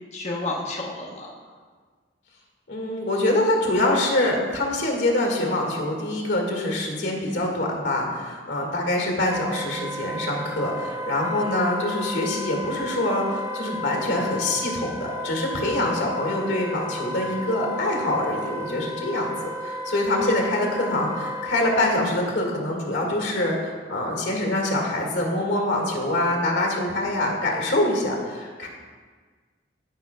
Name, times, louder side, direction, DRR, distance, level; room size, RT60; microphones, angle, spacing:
voice 1, 0.1-1.5 20.5-20.7, left 2 dB, 40° left, -2 dB, 1.0 m, -32 dB
voice 2, 2.7-19.3 19.6-28.7, left 1 dB, 80° left, 0 dB, 1.8 m, -25 dB
Wind instrument woodwind instrument, 9.3-22.0, left 1 dB, 15° right, 0.5 m, -33 dB
13.5 x 6.0 x 2.2 m, 1.5 s
head